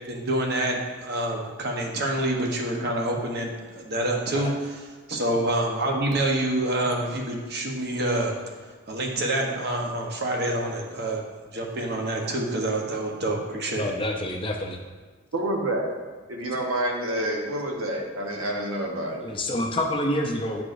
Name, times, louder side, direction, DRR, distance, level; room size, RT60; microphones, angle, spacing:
voice 1, 0.1-8.4 8.6-11.3 11.5-13.9, right 1 dB, 50° right, 0 dB, 0.9 m, -27 dB
voice 2, 13.8-14.8 19.2-20.6, left 1 dB, 25° left, 2 dB, 0.4 m, -27 dB
voice 3, 15.3-15.9 16.3-19.2, right 1 dB, 75° right, 1 dB, 0.9 m, -28 dB
8.7 x 4.7 x 2.5 m, 1.4 s
head